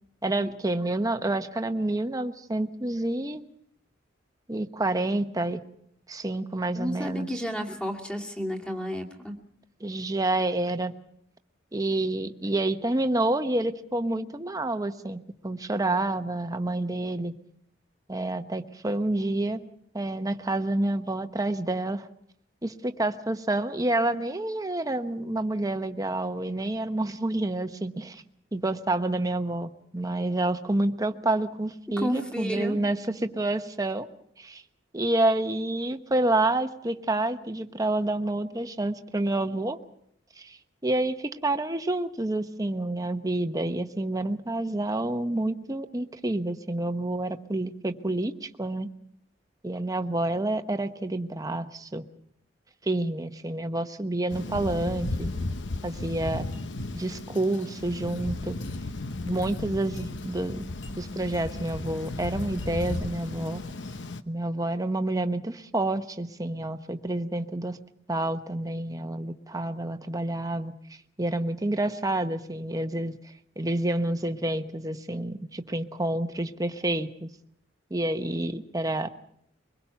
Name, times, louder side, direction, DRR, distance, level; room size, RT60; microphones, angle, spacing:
voice 1, 0.2-3.4 4.5-5.6 6.1-7.3 9.8-10.9 11.7-17.3 18.1-19.6 19.9-22.1 22.6-28.2 28.5-34.1 34.4-34.6 34.9-39.8 40.4-48.9 49.6-52.0 52.8-55.3 55.8-56.5 56.9-58.6 59.2-60.7 61.0-63.6 64.3-67.8 68.1-70.7 71.2-73.2 73.6-77.3 77.9-79.1, right 2 dB, 20° right, 8 dB, 1.0 m, -28 dB
voice 2, 6.7-9.4 32.0-32.8, equal, 5° left, 2 dB, 2.3 m, -32 dB
Thunder, 54.3-64.2, left 2 dB, 65° left, 0.9 m, -35 dB
24.0 x 21.0 x 5.8 m, 0.72 s
head